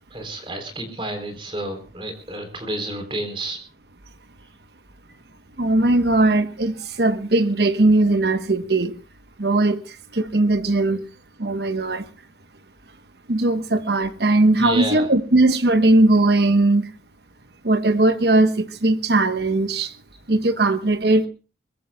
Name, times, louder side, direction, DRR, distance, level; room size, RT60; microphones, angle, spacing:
voice 1, 0.1-3.6 14.6-15.1, right 1 dB, 30° right, 3.9 m, -30 dB
voice 2, 5.6-8.9 9.4-9.8 10.1-11.0 11.4-12.0 13.3-16.9 17.6-19.9 20.3-21.3, right 2 dB, 70° right, 1.2 m, -19 dB
23.0 x 21.0 x 2.3 m
head